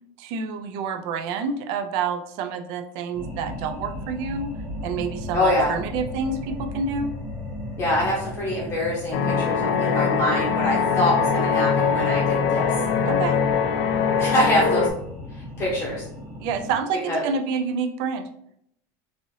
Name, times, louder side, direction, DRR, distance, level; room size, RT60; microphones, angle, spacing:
voice 1, 0.2-4.5 4.8-7.1 13.1-13.4 16.4-18.3, right 5 dB, 50° right, 7 dB, 0.4 m, -28 dB
sound 1, 3.1-16.8, left 1 dB, 15° right, 0.8 m, -36 dB
voice 2, 5.3-5.7 7.8-12.7 14.2-14.9 15.6-16.0 17.1-17.2, left 1 dB, 25° left, -5 dB, 0.7 m, -24 dB
sound 2, 9.1-14.9, left 6 dB, 60° left, 0.3 m, -22 dB
3.2 x 2.6 x 2.6 m, 0.73 s
supercardioid pair, 165°, 10 cm